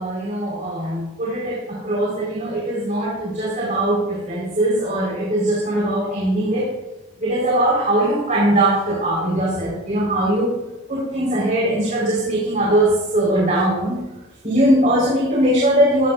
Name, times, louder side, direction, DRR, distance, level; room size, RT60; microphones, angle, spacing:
voice 1, 0.0-6.7 7.2-10.5 10.9-14.0 14.4-16.1, right 1 dB, 40° right, -5 dB, 4.7 m, -20 dB
17.0 x 16.5 x 2.6 m, 1.0 s
head